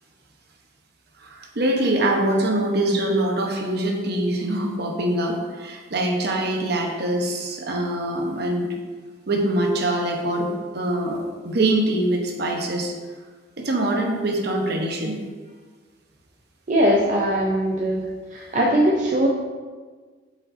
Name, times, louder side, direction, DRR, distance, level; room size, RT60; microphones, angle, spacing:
voice 1, 1.2-8.7 9.3-12.9 13.6-15.2, right 1 dB, 55° right, 1 dB, 1.0 m, -24 dB
voice 2, 16.7-19.3, equal, 40° right, -3 dB, 0.6 m, -21 dB
7.9 x 5.2 x 2.6 m, 1.5 s
head